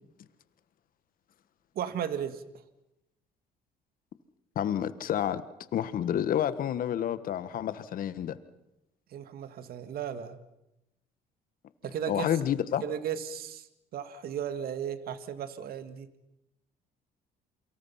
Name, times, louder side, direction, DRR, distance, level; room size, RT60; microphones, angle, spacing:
voice 1, 1.8-2.4 9.1-10.4 11.8-12.3 12.8-13.7 13.9-16.1, right 8 dB, 65° right, 11 dB, 1.9 m, -35 dB
voice 2, 4.5-5.4 5.7-8.4 12.1-12.8, left 10 dB, 55° left, 14 dB, 1.4 m, -29 dB
28.0 x 24.5 x 5.7 m, 0.89 s
cardioid pair, 110°, 17 cm